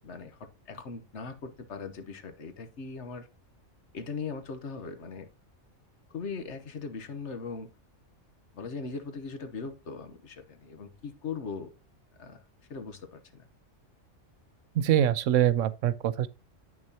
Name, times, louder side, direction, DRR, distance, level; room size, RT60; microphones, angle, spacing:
voice 1, 0.0-3.3 3.9-5.3 6.1-7.7 8.5-11.7 12.2-12.4 12.7-13.5, left 5 dB, 65° left, 1.3 m, -39 dB
voice 2, 14.8-16.3, right 11 dB, 80° right, 1.0 m, -24 dB
8.9 x 6.2 x 2.8 m
omnidirectional pair, 1.3 m